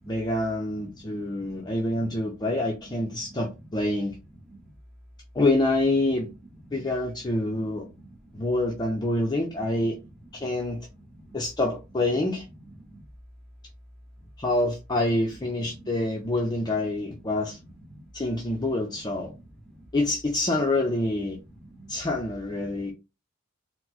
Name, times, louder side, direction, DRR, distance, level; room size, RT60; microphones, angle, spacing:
voice 1, 0.1-4.2 5.3-6.3 6.7-7.9 8.3-10.0 10.3-10.8 11.3-12.5 14.4-17.6 18.1-19.3 19.9-21.4 21.9-22.9, left 2 dB, 20° left, 0.5 m, -26 dB
voice 2, 0.9-1.7 3.2-3.4 4.5-4.7 6.7-6.8 7.8-8.4 11.2-11.4 12.9-13.0 15.8-15.9 17.9-18.1 19.3-19.4 19.6-19.8 21.6-21.9, right 1 dB, ahead, 1.0 m, -49 dB
4.2 x 2.0 x 2.8 m
head